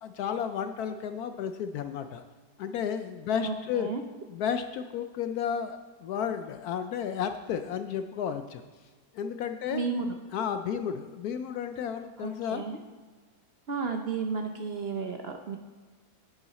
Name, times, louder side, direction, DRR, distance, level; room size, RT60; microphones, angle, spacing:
voice 1, 0.0-2.2 2.6-3.9 4.3-8.6 9.1-9.9 10.3-12.6, left 8 dB, 70° left, 8 dB, 1.0 m, -32 dB
voice 2, 3.4-4.0 9.7-10.1 12.2-12.8 13.7-15.6, right 5 dB, 60° right, 4 dB, 0.6 m, -33 dB
10.0 x 9.4 x 4.1 m, 1.4 s
omnidirectional pair, 1.8 m